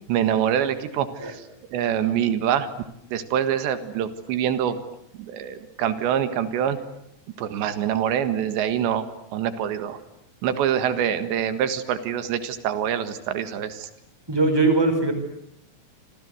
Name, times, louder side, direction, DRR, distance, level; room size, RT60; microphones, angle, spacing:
voice 1, 0.1-1.5 1.7-2.7 3.1-4.8 5.2-6.8 7.4-9.1 9.3-10.0 10.4-13.9, right 9 dB, 90° right, 11 dB, 3.9 m, -25 dB
voice 2, 14.3-15.1, right 3 dB, 5° right, 7 dB, 4.6 m, -20 dB
28.0 x 27.0 x 7.9 m, 0.75 s
omnidirectional pair, 5.0 m